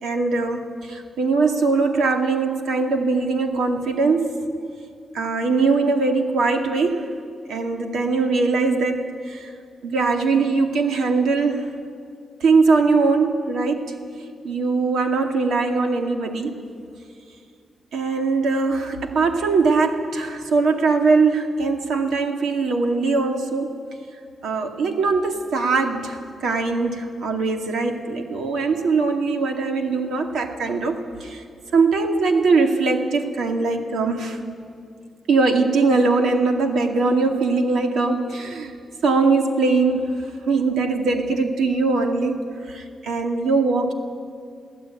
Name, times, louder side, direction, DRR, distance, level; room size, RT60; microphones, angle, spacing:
voice 1, 0.0-4.5 5.1-7.1 7.5-9.5 9.8-11.6 12.4-14.0 14.4-16.6 17.9-23.8 24.4-31.4 31.7-34.4 35.3-38.7 39.0-40.1 40.5-43.9, right 4 dB, 90° right, 4 dB, 2.3 m, -21 dB
22.0 x 16.0 x 9.1 m, 2.3 s
wide cardioid pair, 150°, 0 cm